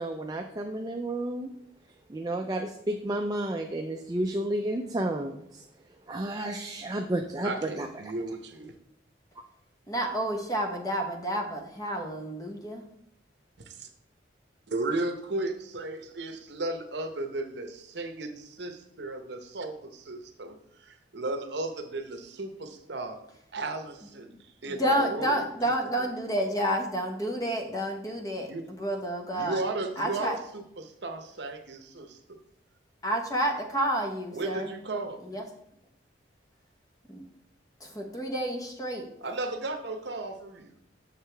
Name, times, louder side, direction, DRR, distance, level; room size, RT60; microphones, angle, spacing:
voice 1, 0.0-1.5 2.1-5.7 6.1-8.1, right 1 dB, 20° right, 3 dB, 0.4 m, -31 dB
voice 2, 7.4-8.7 14.7-23.2 23.5-26.1 28.5-28.6 29.3-32.4 34.3-35.4 39.2-40.7, right 2 dB, 65° right, 6 dB, 0.8 m, -35 dB
voice 3, 9.9-12.8 24.8-29.6 30.0-30.4 33.0-34.7 35.3-35.4 37.1-37.2 37.8-39.1, equal, 20° left, 3 dB, 0.9 m, -30 dB
6.6 x 6.5 x 3.3 m, 0.73 s
head